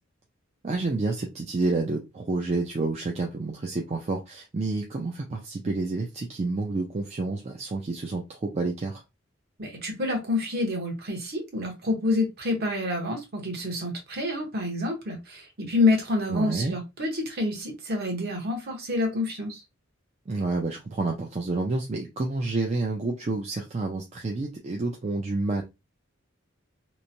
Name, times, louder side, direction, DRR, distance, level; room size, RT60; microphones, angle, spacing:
voice 1, 0.6-9.0 16.3-16.7 20.3-25.6, right 3 dB, 35° right, 0.4 m, -29 dB
voice 2, 9.6-19.6, left 2 dB, 50° right, 0.9 m, -28 dB
3.0 x 2.1 x 2.6 m
head